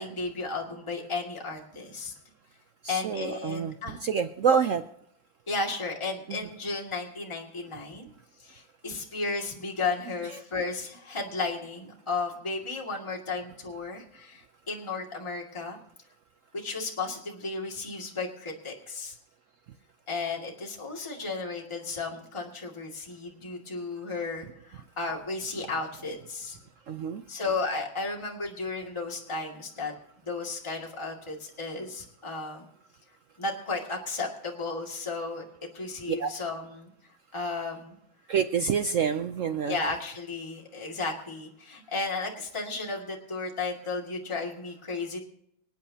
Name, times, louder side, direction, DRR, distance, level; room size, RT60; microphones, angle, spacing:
voice 1, 0.0-2.1 2.9-4.0 5.5-8.1 8.4-15.8 16.5-19.1 20.1-26.6 27.3-29.9 30.2-32.6 33.4-35.5 35.7-37.9 39.7-45.2, left 3 dB, 15° left, -2 dB, 2.1 m, -34 dB
voice 2, 2.8-4.8 6.3-6.4 26.9-27.2 36.1-36.3 38.3-39.8, right 6 dB, 80° right, 9 dB, 0.7 m, -27 dB
26.0 x 9.2 x 2.8 m, 0.74 s
omnidirectional pair, 2.1 m